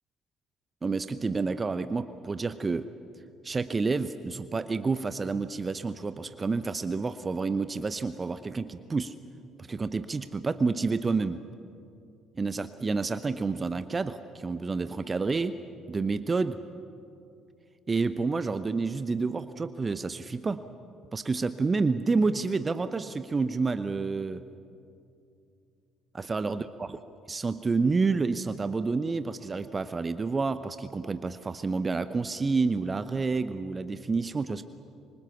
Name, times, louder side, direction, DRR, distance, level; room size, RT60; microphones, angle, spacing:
voice 1, 0.8-2.9 3.4-9.1 9.6-11.4 12.4-15.6 15.9-16.6 17.9-20.6 21.1-24.4 26.3-27.0 27.3-34.6, right 4 dB, 30° right, 12 dB, 0.8 m, -29 dB
25.5 x 24.5 x 6.9 m, 2.5 s
figure-of-eight pair, 50°, 0 cm